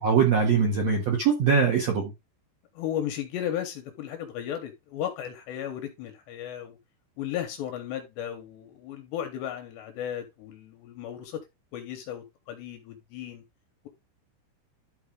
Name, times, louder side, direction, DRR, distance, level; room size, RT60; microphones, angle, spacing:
voice 1, 0.0-2.1, right 6 dB, 80° right, 1.5 m, -22 dB
voice 2, 2.7-6.8 7.2-11.4 11.7-13.4, left 10 dB, 75° left, 2.8 m, -35 dB
11.5 x 4.7 x 3.7 m
omnidirectional pair, 5.7 m